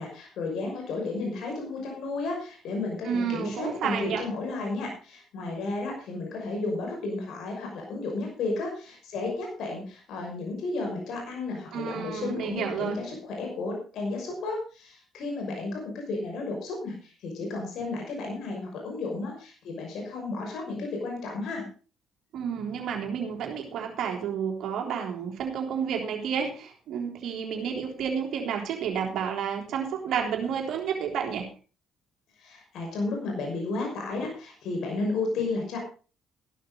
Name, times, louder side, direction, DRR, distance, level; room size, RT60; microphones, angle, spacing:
voice 1, 0.0-21.7 32.4-35.8, left 3 dB, 65° left, 1 dB, 5.9 m, -33 dB
voice 2, 3.0-4.3 11.7-13.0 22.3-31.5, right 7 dB, 60° right, 1 dB, 3.6 m, -30 dB
15.0 x 12.0 x 3.9 m, 0.36 s
hypercardioid pair, 50°, 0 cm